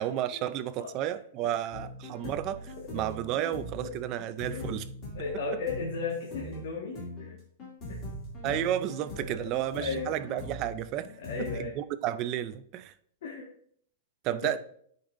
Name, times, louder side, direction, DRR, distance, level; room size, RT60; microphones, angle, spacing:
voice 1, 0.0-2.6 2.9-4.8 8.4-11.1 11.4-12.9 14.2-14.6, right 12 dB, 25° right, 0.4 m, -32 dB
sound 1, 1.7-11.6, left 1 dB, 20° left, 2.6 m, -42 dB
voice 2, 5.1-7.4 7.9-8.0 9.2-10.2 11.2-11.7 13.2-13.5 14.3-14.6, left 4 dB, 60° left, 1.7 m, -36 dB
13.5 x 5.3 x 2.6 m
supercardioid pair, 175°, 0 cm